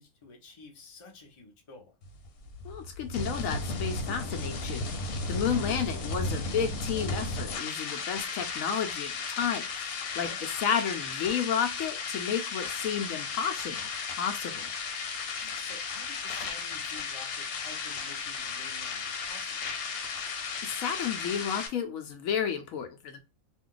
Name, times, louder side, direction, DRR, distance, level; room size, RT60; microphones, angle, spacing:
voice 1, 0.0-1.9 10.2-10.5 15.4-19.7, left 3 dB, 30° left, 0.6 m, -50 dB
sound 1, 2.0-21.7, left 4 dB, 90° left, 1.2 m, -35 dB
voice 2, 2.6-13.9 14.2-14.7 20.2-23.2, left 7 dB, 75° left, 0.9 m, -32 dB
2.6 x 2.3 x 3.7 m
omnidirectional pair, 1.5 m